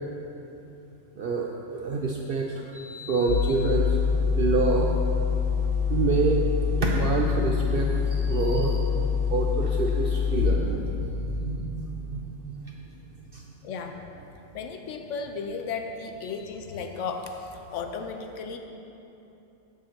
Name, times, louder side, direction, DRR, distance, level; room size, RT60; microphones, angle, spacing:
voice 1, 1.2-4.9 5.9-13.0 13.3-13.4 16.2-16.3, right 4 dB, 65° right, 0 dB, 0.5 m, -28 dB
sound 1, 3.3-10.4, left 7 dB, 90° left, 1.8 m, -25 dB
voice 2, 13.6-14.0 14.5-17.3 17.7-18.6, left 5 dB, 70° left, 5 dB, 0.9 m, -34 dB
7.0 x 6.4 x 4.3 m, 3.0 s
omnidirectional pair, 1.4 m